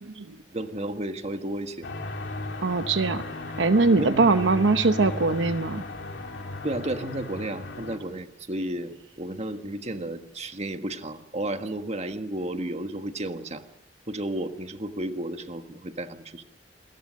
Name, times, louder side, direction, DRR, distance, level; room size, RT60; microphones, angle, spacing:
voice 1, 0.0-0.4 2.6-3.2 3.6-5.8, right 3 dB, 75° right, 10 dB, 0.9 m, -22 dB
voice 2, 0.5-1.9 3.7-4.4 6.6-8.9 9.2-13.6 14.1-16.6, right 1 dB, 35° right, 7 dB, 1.5 m, -32 dB
sound 1, 1.8-8.0, left 2 dB, 70° left, 3.1 m, -36 dB
28.5 x 22.0 x 6.4 m, 0.82 s
head